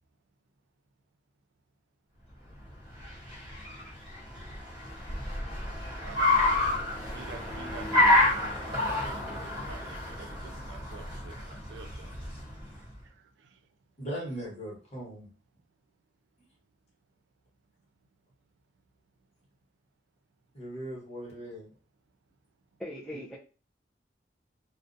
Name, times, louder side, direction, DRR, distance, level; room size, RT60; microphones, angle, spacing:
Car, 2.6-12.9, left 2 dB, 25° right, 1.0 m, -29 dB
voice 1, 6.0-6.6 7.1-12.1 13.5-13.6, right 5 dB, 85° right, 0.3 m, -48 dB
voice 2, 14.0-15.3 20.5-21.7, right 1 dB, 35° left, 1.1 m, -39 dB
voice 3, 22.8-23.4, equal, 5° left, 0.3 m, -39 dB
2.4 x 2.1 x 2.5 m
head